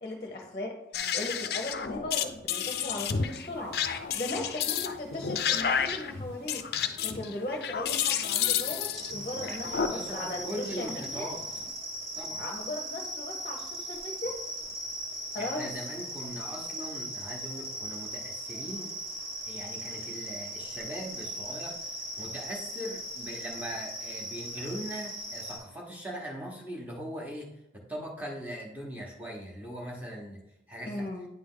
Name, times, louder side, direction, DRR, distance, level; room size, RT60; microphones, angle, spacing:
voice 1, 0.0-0.8 1.1-3.8 4.1-6.6 7.0-11.3 12.4-14.4 15.3-15.7 18.6-18.9 30.9-31.3, left 1 dB, 30° left, 1 dB, 0.8 m, -37 dB
sound 1, 0.9-9.9, left 8 dB, 60° left, 0.4 m, -31 dB
Water, 2.7-11.7, equal, 60° right, 1.2 m, -53 dB
sound 2, 8.9-25.6, right 1 dB, 35° right, 1.3 m, -38 dB
voice 2, 9.3-11.4 12.2-12.4 15.4-18.9 19.5-21.8 22.2-31.1, equal, 10° right, -2 dB, 1.1 m, -40 dB
9.2 x 3.4 x 3.8 m, 0.87 s
head